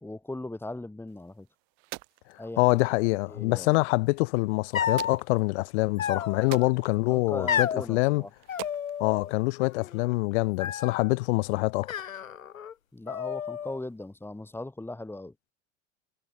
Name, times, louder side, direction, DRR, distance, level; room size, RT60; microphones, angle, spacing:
voice 1, 0.0-1.5 2.4-3.8 7.1-8.3 12.9-15.3, left 2 dB, 5° left, 1.8 m, -39 dB
sound 1, 1.1-10.1, right 40 dB or more, 55° right, 6.5 m, -48 dB
voice 2, 2.6-8.2 9.0-11.9, left 24 dB, 60° left, 1.1 m, -25 dB
sound 2, 4.7-5.2 6.0-6.7 7.5-7.9 8.5-9.3 9.6-10.1 10.6-11.1 11.8-12.7 13.1-13.8, left 8 dB, 85° left, 1.5 m, -31 dB
hypercardioid pair, 85°, 39 cm